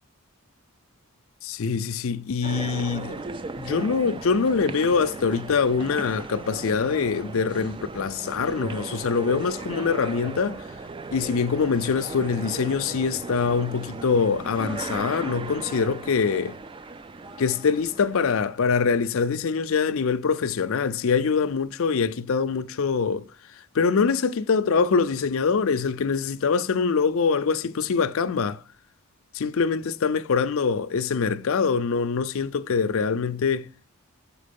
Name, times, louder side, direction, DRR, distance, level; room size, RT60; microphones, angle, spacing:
voice 1, 1.4-3.2 3.6-10.6 11.1-16.6 17.4-23.3 23.7-28.6 29.3-33.7, left 5 dB, 60° left, 0.5 m, -24 dB
sound 1, 2.4-19.0, right 3 dB, 20° right, 0.3 m, -37 dB
7.4 x 4.5 x 5.2 m
head